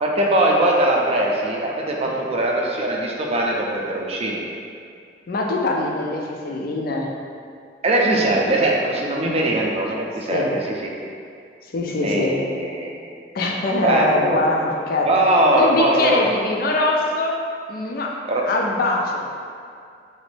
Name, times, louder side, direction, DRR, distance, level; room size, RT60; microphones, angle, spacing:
voice 1, 0.0-4.4 7.8-10.9 12.0-12.9 13.8-14.4 15.1-16.3 18.3-18.4, right 1 dB, 35° right, -1 dB, 0.4 m, -21 dB
voice 2, 5.3-7.1 9.2-9.4 10.3-10.5 11.7-12.4 13.3-15.2 15.5-17.4 17.7-18.1 18.5-19.3, left 2 dB, 55° left, 0 dB, 0.4 m, -23 dB
3.9 x 2.6 x 3.3 m, 2.3 s
head